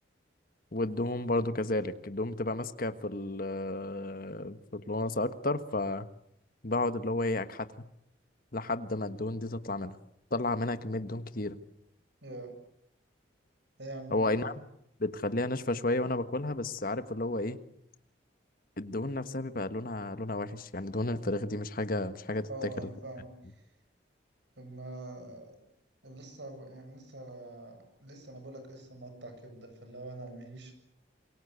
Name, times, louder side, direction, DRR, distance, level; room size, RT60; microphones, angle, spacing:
voice 1, 0.7-6.1 6.6-7.7 8.5-9.9 10.3-11.6 14.1-14.5 15.0-17.6 18.8-22.7, left 2 dB, 50° left, 10 dB, 1.5 m, -32 dB
voice 2, 12.2-12.5 13.8-14.5 22.5-23.6 24.6-25.6 26.0-30.7, right 1 dB, 65° right, 7 dB, 7.6 m, -44 dB
27.0 x 23.5 x 8.2 m, 0.76 s
head